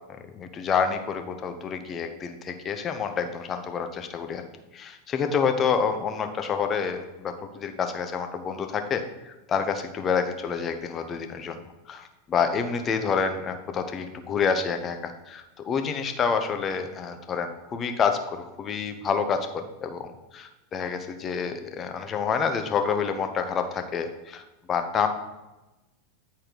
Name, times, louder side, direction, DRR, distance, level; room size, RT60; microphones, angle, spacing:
voice 1, 0.3-4.4 4.7-11.6 11.9-24.4 24.7-25.1, left 6 dB, 30° left, 7 dB, 0.8 m, -28 dB
10.0 x 4.3 x 3.9 m, 1.0 s
figure-of-eight pair, 90°, 0 cm